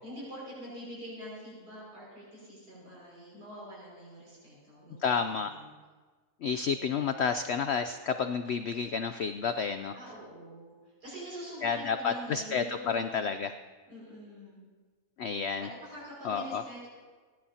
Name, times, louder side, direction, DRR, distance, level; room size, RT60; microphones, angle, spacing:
voice 1, 0.0-5.7 9.9-13.2 13.9-14.6 15.6-16.9, equal, 85° right, -6 dB, 6.3 m, -45 dB
voice 2, 5.0-5.5 6.4-9.9 11.6-13.5 15.2-15.7 16.2-16.6, left 6 dB, 75° left, 9 dB, 0.6 m, -30 dB
29.0 x 11.0 x 2.8 m, 1.4 s
omnidirectional pair, 1.7 m